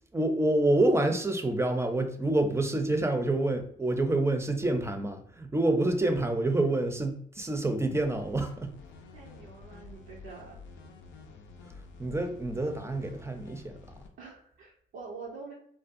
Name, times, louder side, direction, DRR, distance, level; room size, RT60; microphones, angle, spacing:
voice 1, 0.0-8.7 12.0-13.7, right 2 dB, 15° right, 6 dB, 0.5 m, -27 dB
sound 1, 7.9-14.1, left 4 dB, 80° left, 0.4 m, -50 dB
voice 2, 9.1-10.6 14.2-15.5, right 4 dB, 80° right, -4 dB, 0.5 m, -45 dB
2.5 x 2.2 x 2.5 m, 0.64 s
supercardioid pair, 55°, 19 cm